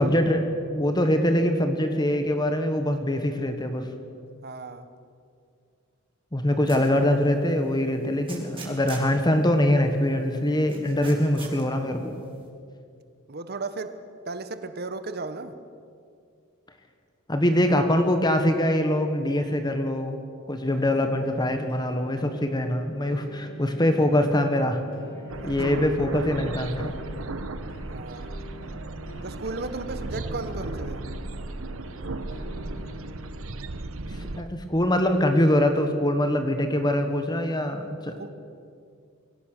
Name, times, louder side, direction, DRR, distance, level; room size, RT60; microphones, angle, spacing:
voice 1, 0.0-3.9 6.3-12.1 17.3-20.2 20.5-24.8 25.4-26.9 34.2-38.2, left 1 dB, 20° left, 6 dB, 1.4 m, -23 dB
voice 2, 4.4-4.9 13.3-13.9 14.3-15.5 25.7-25.8 27.9-28.4 29.2-31.0 38.2-38.3, right 3 dB, 50° right, 10 dB, 1.2 m, -35 dB
sound 1, 6.7-7.0 7.5-7.6 8.3-9.1 10.7-11.6, right 4 dB, 25° right, 4.0 m, -40 dB
sound 2, 20.7-33.2, left 1 dB, 70° left, 4.5 m, -45 dB
sound 3, 25.3-34.4, right 2 dB, 70° right, 1.0 m, -35 dB
23.0 x 17.0 x 6.7 m, 2.3 s
head